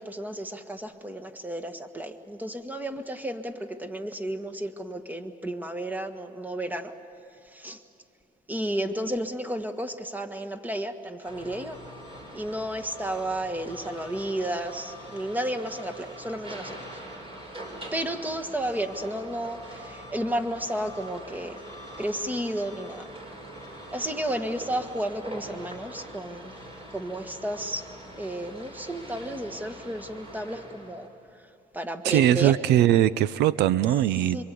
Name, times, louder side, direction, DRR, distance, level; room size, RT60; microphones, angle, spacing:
voice 1, 0.0-6.9 7.4-7.8 8.5-11.8 12.3-17.0 17.9-21.6 22.0-23.1 23.9-26.5 26.9-27.9 28.2-31.1 31.7-32.6 34.3-34.4, right 1 dB, 10° right, 8 dB, 1.6 m, -32 dB
sound 1, 11.2-31.1, right 1 dB, 35° right, 5.6 m, -43 dB
voice 2, 32.0-34.4, right 12 dB, 80° right, 17 dB, 0.6 m, -21 dB
26.5 x 24.5 x 8.5 m, 2.6 s
cardioid pair, 110°, 17 cm